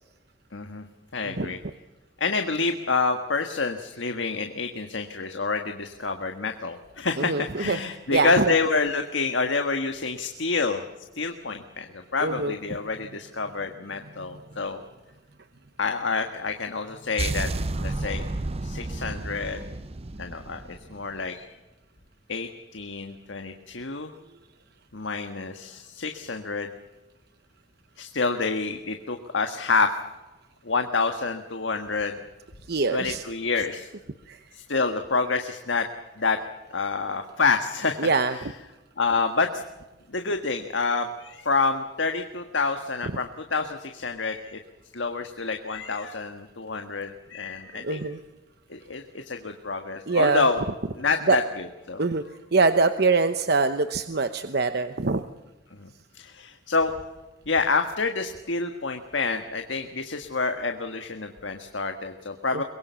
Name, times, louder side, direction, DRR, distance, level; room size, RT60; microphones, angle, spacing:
voice 1, 0.5-0.8 1.1-1.6 2.2-10.8 11.1-14.8 15.8-17.5 17.8-18.2 18.6-19.6 20.2-20.6 20.9-21.5 22.3-24.1 24.9-26.7 28.0-29.9 30.6-32.2 32.9-33.9 34.5-35.9 36.2-36.4 36.7-38.1 39.0-39.6 40.1-44.6 44.9-48.0 48.7-50.6 50.9-52.0 55.8-55.9 56.1-56.9 57.5-62.6, left 4 dB, 85° left, 5 dB, 1.6 m, -28 dB
voice 2, 7.2-7.8 8.1-8.4 12.2-12.5 32.7-33.2 34.3-34.4 38.0-38.4 47.8-48.2 50.1-50.4 51.3-51.4 52.0-52.2 52.5-55.2 62.5-62.6, right 3 dB, 60° right, 10 dB, 0.9 m, -23 dB
sound 1, 17.2-21.3, right 2 dB, 35° right, 0.7 m, -31 dB
24.0 x 21.5 x 7.0 m, 1.1 s
head